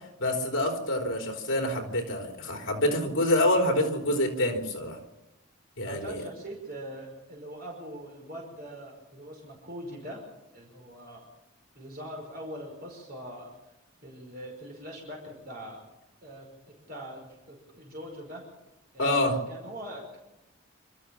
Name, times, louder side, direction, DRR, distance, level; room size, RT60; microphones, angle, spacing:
voice 1, 0.2-5.0 5.8-6.2 19.0-19.4, left 1 dB, 60° left, 2 dB, 3.6 m, -26 dB
voice 2, 5.8-10.2 10.5-11.2 11.8-13.5 14.0-15.8 16.2-16.5 16.9-18.4 18.9-20.2, equal, 45° right, -1 dB, 5.5 m, -42 dB
28.0 x 13.5 x 7.3 m, 0.97 s
head